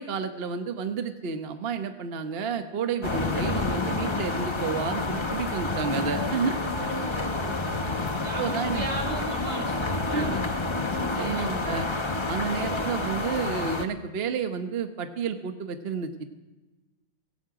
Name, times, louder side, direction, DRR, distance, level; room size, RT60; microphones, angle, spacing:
voice 1, 0.0-6.6 8.4-8.8 9.5-9.6 10.1-10.3 11.1-11.9 12.3-16.2, right 6 dB, 45° right, 7 dB, 0.9 m, -31 dB
sound 1, 3.0-13.8, left 3 dB, 30° left, 0.5 m, -29 dB
voice 2, 6.4-7.8 8.2-10.4 10.9-11.7, right 1 dB, 60° right, 2 dB, 4.6 m, -37 dB
18.0 x 15.0 x 4.8 m, 1.1 s
omnidirectional pair, 2.1 m